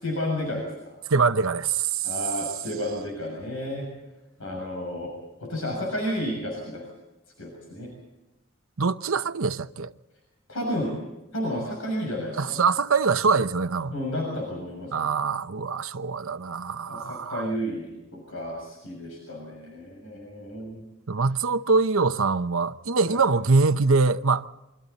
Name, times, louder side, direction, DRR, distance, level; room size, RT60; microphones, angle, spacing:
voice 1, 0.0-0.9 2.0-3.9 4.4-5.1 5.4-6.8 7.4-7.9 10.5-10.9 11.3-12.6 13.9-15.1 16.9-20.9 23.1-23.2, equal, 75° left, 6.9 m, -32 dB
voice 2, 1.1-2.1 8.8-9.9 12.4-13.9 14.9-17.5 21.1-24.5, right 4 dB, 80° right, 0.9 m, -23 dB
28.5 x 25.0 x 4.1 m
head